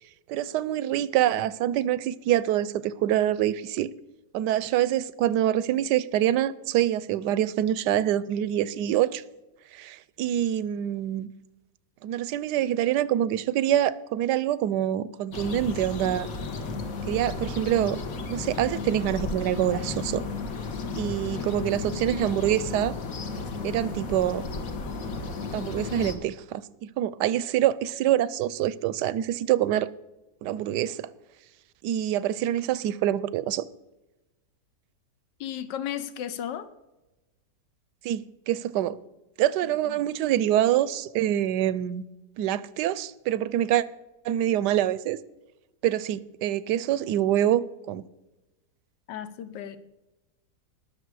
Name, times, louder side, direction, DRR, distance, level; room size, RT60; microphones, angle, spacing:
voice 1, 0.3-3.9 4.3-9.2 9.7-11.3 12.0-16.3 17.1-18.0 18.3-20.2 20.9-22.9 23.6-24.4 25.5-29.9 30.4-31.1 31.8-33.6 38.0-39.0 39.4-42.0 42.4-43.8 44.2-45.2 45.8-48.0, right 12 dB, 80° right, 1.2 m, -25 dB
sound 1, 15.3-26.2, left 4 dB, 55° left, 1.6 m, -34 dB
voice 2, 35.4-36.7 39.6-40.0 49.1-49.8, left 10 dB, 90° left, 1.4 m, -35 dB
19.5 x 6.8 x 4.7 m
omnidirectional pair, 1.8 m